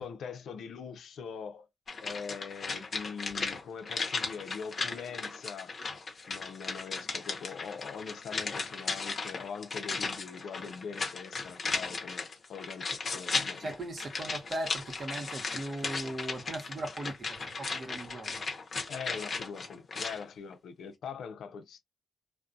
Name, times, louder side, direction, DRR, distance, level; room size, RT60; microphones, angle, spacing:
voice 1, 0.0-1.7 2.0-5.7 6.3-13.7 18.9-21.8, left 6 dB, 75° left, 0.5 m, -42 dB
sound 1, 1.9-20.2 20.5-20.6, left 4 dB, 40° left, 0.7 m, -36 dB
voice 2, 13.6-18.4, right 1 dB, 40° right, 0.9 m, -38 dB
2.3 x 2.1 x 2.6 m
cardioid pair, 120°, 0 cm